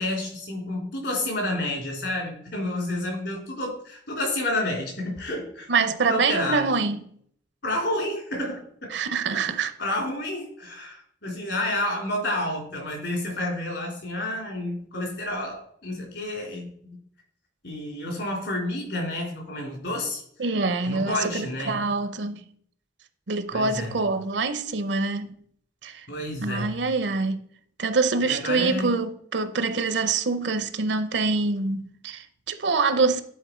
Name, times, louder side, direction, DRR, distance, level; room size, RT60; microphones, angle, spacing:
voice 1, 0.0-5.7 6.0-6.7 7.6-8.9 9.3-17.0 17.6-20.2 20.8-21.8 23.5-23.9 26.1-26.7 28.2-28.9, left 1 dB, 70° left, 3.1 m, -30 dB
voice 2, 5.7-7.1 8.9-9.7 20.4-22.4 23.3-25.4 25.8-26.1 26.4-27.4 27.8-33.2, right 4 dB, 75° right, 0.7 m, -25 dB
9.5 x 4.3 x 4.4 m
head